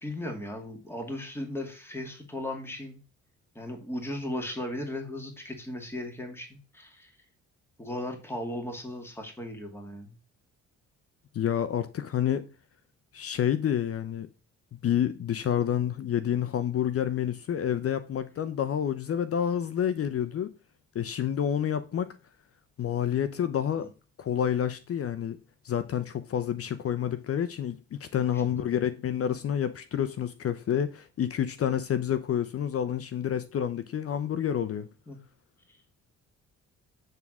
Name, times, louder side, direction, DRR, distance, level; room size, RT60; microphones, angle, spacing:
voice 1, 0.0-3.0 3.6-7.1 7.8-10.2 23.8-23.9 28.1-28.5 35.1-35.2, left 1 dB, 10° left, 2.2 m, -37 dB
voice 2, 11.3-12.5 13.1-14.3 14.8-20.5 20.9-22.1 22.8-23.9 24.2-25.4 25.6-34.9, left 9 dB, 50° left, 0.7 m, -28 dB
9.2 x 3.7 x 6.1 m
cardioid pair, 90°, 30 cm